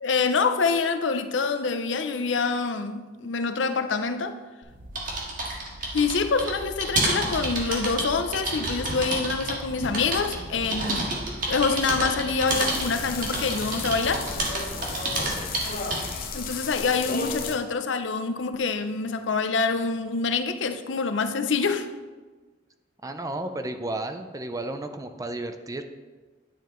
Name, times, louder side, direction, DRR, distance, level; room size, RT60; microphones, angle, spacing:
voice 1, 0.0-4.4 5.9-11.1 11.5-14.3 16.3-21.9, left 4 dB, 90° left, 8 dB, 0.6 m, -26 dB
sound 1, 4.6-16.2, right 2 dB, 50° right, 1.7 m, -30 dB
sound 2, 8.5-15.9, equal, 5° left, 2.3 m, -43 dB
sound 3, 12.5-17.6, left 4 dB, 55° left, 0.9 m, -34 dB
voice 2, 23.0-25.8, right 2 dB, 20° right, 8 dB, 0.4 m, -33 dB
10.0 x 6.9 x 3.1 m, 1.3 s
head